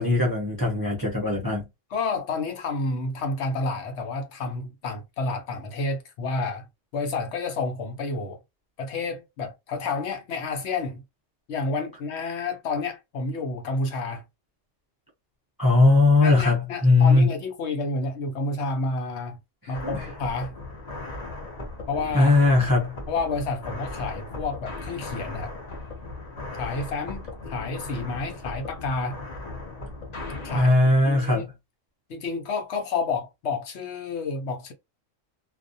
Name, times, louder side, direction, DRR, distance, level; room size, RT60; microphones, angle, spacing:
voice 1, 0.0-1.6 15.6-17.3 19.6-20.1 22.1-22.9 30.5-31.4, left 2 dB, 30° right, 0.4 m, -19 dB
voice 2, 1.9-6.7 6.9-8.4 8.8-11.0 11.5-14.2 16.2-19.4 19.7-20.5 21.9-22.3 23.1-25.5 26.6-29.2 30.4-30.7 31.0-31.5 32.1-34.7, left 3 dB, 65° left, 0.9 m, -30 dB
sound 1, 19.7-30.6, left 2 dB, 45° left, 0.5 m, -37 dB
2.4 x 2.1 x 2.6 m
omnidirectional pair, 1.3 m